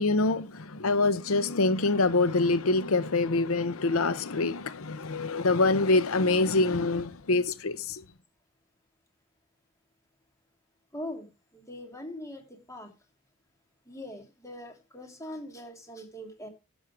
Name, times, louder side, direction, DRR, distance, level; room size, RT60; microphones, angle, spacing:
voice 1, 0.0-8.0, left 3 dB, 85° left, 0.7 m, -25 dB
voice 2, 10.9-11.3 11.5-12.9 13.9-16.5, left 1 dB, 15° left, 2.6 m, -41 dB
11.0 x 8.1 x 4.6 m
head